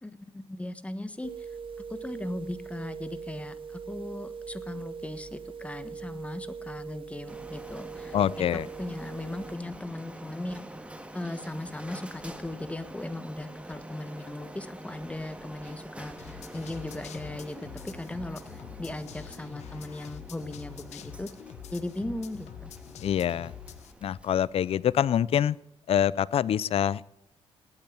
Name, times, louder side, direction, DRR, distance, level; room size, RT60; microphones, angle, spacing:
voice 1, 0.0-1.5 1.9-10.7 11.1-21.3 21.7-22.7, left 1 dB, 10° left, 12 dB, 1.3 m, -38 dB
sound 1, 1.2-9.6, right 6 dB, 50° right, 1.0 m, -41 dB
Printer, 7.3-24.9, right 1 dB, 10° right, 1.6 m, -46 dB
voice 2, 8.1-8.7 23.0-23.5 24.0-25.6 25.9-27.0, left 9 dB, 60° left, 21 dB, 0.5 m, -25 dB
sound 2, 16.2-23.9, left 9 dB, 85° left, 1.0 m, -45 dB
18.5 x 8.9 x 8.7 m, 0.82 s
cardioid pair, 105°, 11 cm